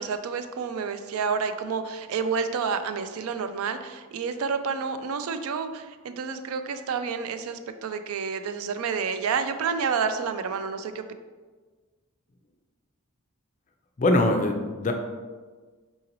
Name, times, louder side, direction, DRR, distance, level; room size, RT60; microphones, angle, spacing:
voice 1, 0.0-11.0, right 5 dB, 80° right, 10 dB, 0.3 m, -29 dB
voice 2, 14.0-14.9, left 2 dB, 35° left, 4 dB, 0.4 m, -22 dB
3.9 x 3.8 x 2.9 m, 1.4 s
head